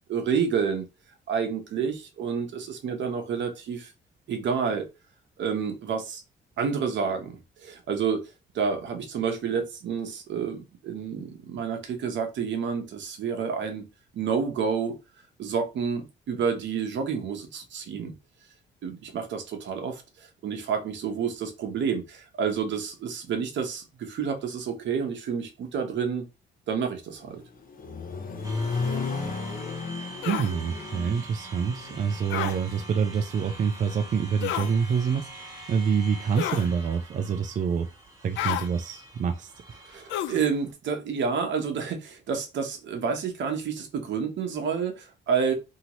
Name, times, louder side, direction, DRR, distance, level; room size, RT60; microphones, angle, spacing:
voice 1, 0.1-0.9 1.3-3.9 4.3-4.9 5.4-6.2 6.6-8.2 8.5-13.8 14.1-14.9 15.4-18.2 18.8-26.2 26.7-27.4 32.3-32.5 39.9-45.5, right 6 dB, 65° right, 0.9 m, -29 dB
Accelerating revving vroom, 27.2-33.2, left 4 dB, 45° left, 0.7 m, -34 dB
sound 1, 28.4-40.7, right 2 dB, 15° right, 1.2 m, -45 dB
sound 2, 30.2-30.5 32.3-32.6 34.4-34.7 36.4-36.7 38.4-38.7 40.1-40.4, left 11 dB, 75° left, 0.4 m, -30 dB
voice 2, 30.3-37.9 38.2-39.8, right 6 dB, 40° right, 0.4 m, -27 dB
2.8 x 2.8 x 2.9 m
cardioid pair, 90°, 20 cm